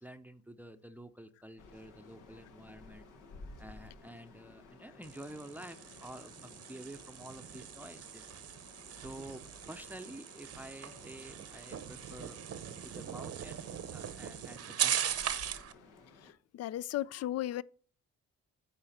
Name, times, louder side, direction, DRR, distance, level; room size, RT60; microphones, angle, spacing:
voice 1, 0.0-3.1 3.6-8.3 9.0-9.4 9.7-12.4 12.8-15.4, right 1 dB, 5° right, 0.6 m, -49 dB
sound 1, 1.6-16.3, left 3 dB, 85° left, 1.5 m, -56 dB
sound 2, 5.0-15.7, right 9 dB, 55° right, 0.8 m, -39 dB
voice 2, 16.5-17.6, left 13 dB, 55° left, 0.4 m, -35 dB
8.9 x 4.3 x 5.7 m
cardioid pair, 90°, 30 cm